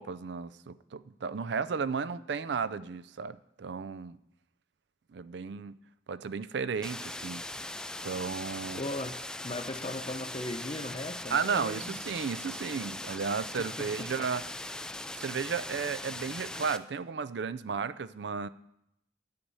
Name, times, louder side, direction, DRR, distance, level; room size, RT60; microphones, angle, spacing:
voice 1, 0.0-4.2 5.1-5.8 6.1-7.5 8.0-8.8 11.3-14.5 15.1-18.5, right 5 dB, 65° right, 16 dB, 0.4 m, -34 dB
sound 1, 6.8-16.8, left 1 dB, 5° left, 0.3 m, -40 dB
voice 2, 8.7-9.2 9.4-11.9 13.8-13.9, left 1 dB, 30° left, 8 dB, 0.8 m, -37 dB
10.0 x 8.7 x 5.5 m, 0.80 s
head